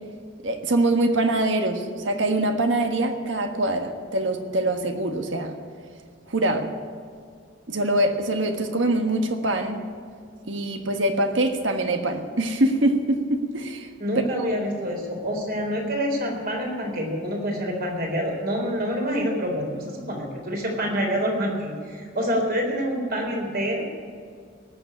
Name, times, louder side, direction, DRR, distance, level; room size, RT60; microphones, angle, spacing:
voice 1, 0.4-5.6 6.3-6.7 7.7-9.8 10.4-13.9, right 1 dB, 70° right, 5 dB, 1.5 m, -24 dB
voice 2, 14.0-23.8, equal, 50° right, 1 dB, 3.9 m, -27 dB
18.5 x 7.3 x 10.0 m, 2.2 s
head